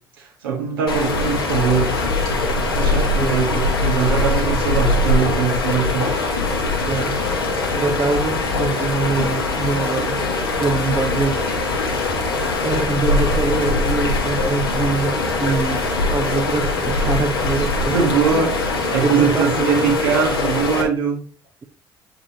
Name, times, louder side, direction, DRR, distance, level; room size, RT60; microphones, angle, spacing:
voice 1, 0.2-2.0 2.2-6.1 17.9-18.5 18.9-21.2, right 6 dB, 75° right, 1.7 m, -21 dB
sound 1, 0.9-20.8, left 2 dB, 80° left, 1.4 m, -21 dB
voice 2, 6.8-7.2 7.8-10.2 10.6-11.6 12.6-18.5 19.0-20.1, right 3 dB, 25° right, 0.8 m, -24 dB
8.4 x 5.0 x 2.9 m
figure-of-eight pair, 55°, 12 cm